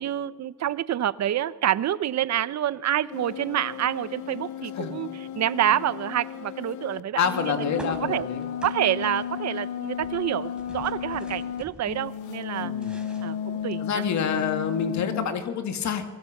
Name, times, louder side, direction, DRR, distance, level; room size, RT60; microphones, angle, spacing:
voice 1, 0.0-5.1 5.3-8.3 8.6-12.7 13.2-14.0, right 11 dB, 60° right, 16 dB, 0.9 m, -27 dB
sound 1, 3.1-11.6 11.9-15.3, left 8 dB, 90° left, 1.2 m, -34 dB
voice 2, 7.2-8.5 12.6-13.0 13.8-16.1, left 7 dB, 65° left, 7 dB, 2.1 m, -27 dB
sound 2, 7.8-9.7 9.9-12.1 12.5-14.0, right 1 dB, 5° right, 4.2 m, -47 dB
23.5 x 22.5 x 7.3 m, 1.3 s
cardioid pair, 90°, 30 cm